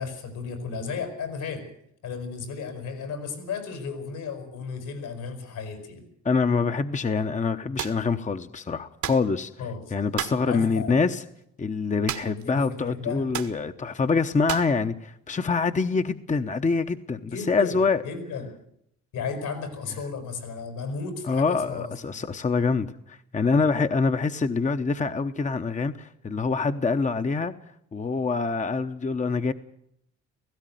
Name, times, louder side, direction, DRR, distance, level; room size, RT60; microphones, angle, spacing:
voice 1, 0.0-1.7 2.0-6.0 9.6-9.8 10.4-11.1 12.4-13.3 17.3-18.5 19.1-22.2, left 5 dB, 80° left, 7 dB, 6.1 m, -34 dB
voice 2, 6.2-9.5 9.9-11.2 11.6-18.0 21.3-27.5 27.9-29.5, left 4 dB, 25° left, 9 dB, 0.9 m, -25 dB
sound 1, 7.8-8.0 9.0-9.3 10.2-10.5 12.1-12.5 12.7-12.8 13.3-13.6 14.5-14.8, right 10 dB, 75° right, 1.8 m, -32 dB
17.5 x 16.0 x 9.2 m, 0.73 s
cardioid pair, 90°, 30 cm